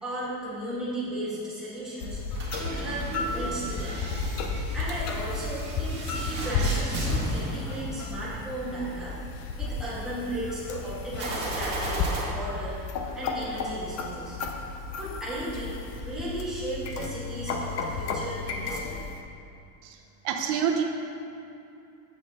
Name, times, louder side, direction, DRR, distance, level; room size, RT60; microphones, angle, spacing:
voice 1, 0.0-2.2 2.6-4.0 4.7-9.1 9.6-12.8 13.1-14.4 15.0-19.0, right 1 dB, ahead, -10 dB, 1.6 m, -35 dB
sound 1, 2.0-19.2, left 3 dB, 35° left, 0.5 m, -33 dB
sound 2, 2.3-8.5 11.1-12.2, right 1 dB, 25° right, 1.6 m, -35 dB
voice 2, 20.2-20.8, right 8 dB, 85° right, 4 dB, 1.0 m, -26 dB
7.4 x 6.4 x 3.6 m, 2.7 s
cardioid pair, 165°, 46 cm